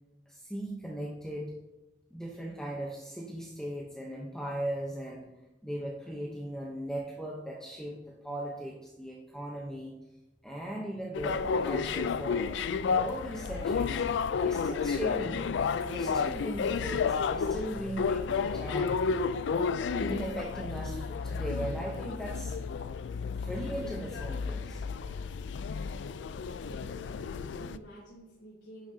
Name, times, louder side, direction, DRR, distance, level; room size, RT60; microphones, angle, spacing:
voice 1, 0.3-1.5 2.1-5.3 5.6-9.9 10.4-12.6 12.9-14.0 14.4-15.5 15.8-19.2 19.9-22.6 23.3-25.2, right 1 dB, 5° left, -2 dB, 0.8 m, -38 dB
sound 1, 11.1-27.8, left 5 dB, 70° left, 0.3 m, -31 dB
voice 2, 26.3-28.9, right 1 dB, 85° left, -8 dB, 3.2 m, -51 dB
10.0 x 7.1 x 2.8 m, 1.0 s
head